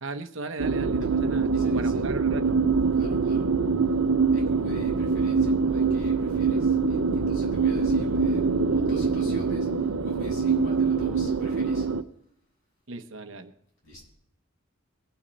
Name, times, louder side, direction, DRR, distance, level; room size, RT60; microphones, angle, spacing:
voice 1, 0.0-2.6 12.9-13.5, right 3 dB, 65° right, 8 dB, 0.9 m, -37 dB
sound 1, 0.6-12.0, right 4 dB, 85° right, 0.6 m, -24 dB
voice 2, 1.5-2.0 2.9-3.5 4.3-11.9 13.8-14.0, left 1 dB, 60° left, -3 dB, 7.3 m, -46 dB
21.5 x 7.2 x 5.2 m, 0.73 s
head